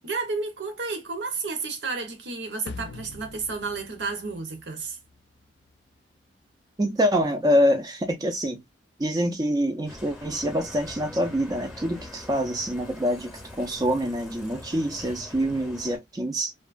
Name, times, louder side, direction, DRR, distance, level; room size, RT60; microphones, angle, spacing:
voice 1, 0.0-5.0, right 4 dB, 70° right, 0.8 m, -31 dB
sound 1, 2.7-5.1, left 3 dB, 70° left, 0.4 m, -42 dB
voice 2, 6.8-8.6 9.0-16.5, equal, 20° right, 0.4 m, -25 dB
Bicycle, 9.9-16.0, left 1 dB, ahead, 0.8 m, -43 dB
2.9 x 2.2 x 2.3 m
head